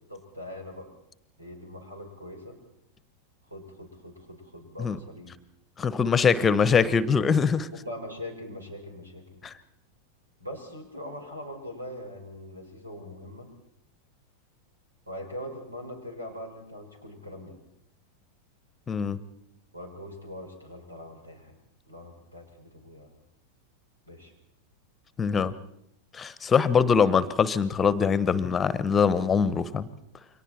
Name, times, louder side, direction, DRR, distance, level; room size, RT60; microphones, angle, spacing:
voice 1, 0.1-0.9 1.4-2.6 3.5-5.3 5.8-6.8 7.7-9.4 10.4-13.5 15.1-17.6 19.7-21.5 21.9-23.1 24.0-24.3, left 1 dB, 80° right, 4 dB, 5.5 m, -42 dB
voice 2, 5.8-7.7 9.4-9.5 18.9-19.2 25.2-25.5 26.1-29.9, left 6 dB, 20° left, 17 dB, 1.0 m, -23 dB
29.5 x 24.0 x 4.4 m, 0.77 s
figure-of-eight pair, 90°, 0 cm